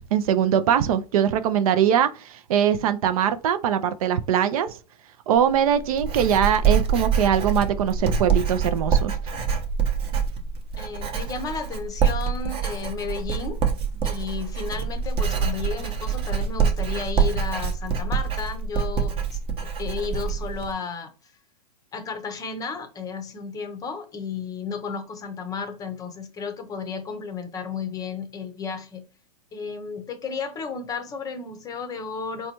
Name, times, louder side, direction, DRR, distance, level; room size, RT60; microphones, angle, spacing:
voice 1, 0.0-4.8 5.3-9.2, right 9 dB, 60° right, 0.4 m, -22 dB
Writing, 5.3-20.7, right 6 dB, 25° right, 0.7 m, -25 dB
voice 2, 10.8-13.6 14.0-21.1 21.9-29.1 29.5-32.5, left 5 dB, 20° left, 0.6 m, -33 dB
4.0 x 2.2 x 2.9 m
hypercardioid pair, 125°, 20 cm